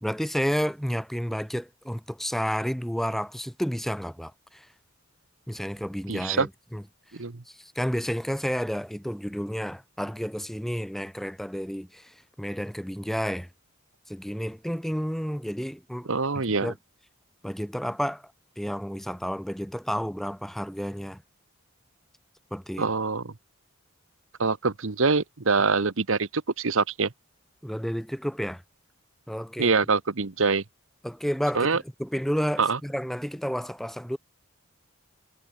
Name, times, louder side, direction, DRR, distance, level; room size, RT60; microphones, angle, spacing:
voice 1, 0.0-4.7 5.5-6.8 7.5-13.5 14.1-16.1 16.3-16.8 17.4-18.2 18.6-21.2 22.5-22.9 27.6-28.6 29.3-29.7 31.0-34.2, equal, ahead, 1.0 m, -31 dB
voice 2, 6.1-6.5 7.1-7.4 16.1-16.7 22.8-23.3 24.4-27.1 29.6-30.6 31.5-31.8 32.6-32.8, right 4 dB, 65° right, 1.0 m, -24 dB
head